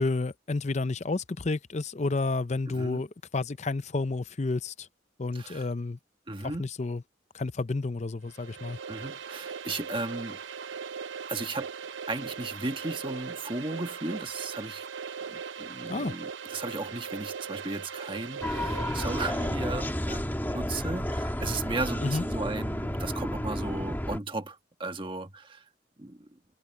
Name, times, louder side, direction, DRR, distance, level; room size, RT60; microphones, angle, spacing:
voice 1, 0.0-3.1 3.3-4.9 5.2-6.0 6.6-7.0 7.3-8.8 15.9-16.1 22.0-22.2, left 3 dB, 35° left, 0.6 m, -30 dB
voice 2, 2.7-3.1 5.3-5.7 6.3-6.7 8.9-10.4 11.3-11.7 12.1-14.8 15.3-25.6 26.0-26.3, right 2 dB, 25° right, 1.4 m, -35 dB
sound 1, 8.2-19.9, right 6 dB, 80° right, 0.8 m, -40 dB
sound 2, 18.4-24.2, equal, 10° left, 2.1 m, -31 dB
head